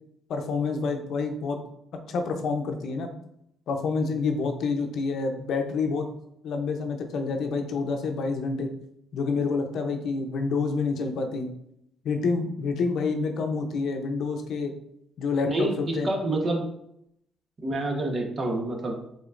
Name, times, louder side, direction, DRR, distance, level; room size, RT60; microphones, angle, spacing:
voice 1, 0.3-1.6 2.1-3.1 3.7-6.1 6.4-8.7 9.1-11.5 12.0-14.7 15.2-15.7 16.0-16.1, left 4 dB, 75° left, 5 dB, 0.6 m, -28 dB
voice 2, 15.4-16.6 17.6-18.9, right 2 dB, 40° right, 2 dB, 1.0 m, -27 dB
5.0 x 3.8 x 2.5 m, 0.76 s
cardioid pair, 90°, 0 cm